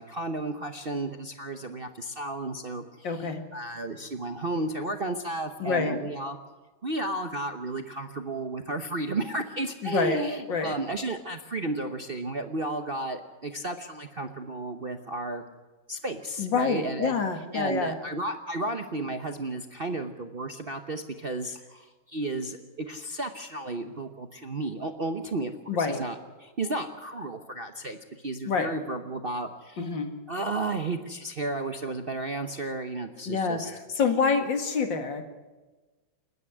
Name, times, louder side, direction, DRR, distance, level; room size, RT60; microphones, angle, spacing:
voice 1, 0.0-6.4 6.8-15.4 15.9-17.2 17.5-30.0 30.3-33.7 34.3-34.4, right 2 dB, 40° right, 6 dB, 0.9 m, -33 dB
voice 2, 3.0-3.4 5.6-6.0 9.8-10.2 10.5-10.7 16.4-17.9 25.7-26.0 28.5-28.7 29.8-30.1 33.3-35.3, left 5 dB, 65° left, 6 dB, 2.5 m, -27 dB
29.0 x 9.8 x 9.7 m, 1.2 s
omnidirectional pair, 2.2 m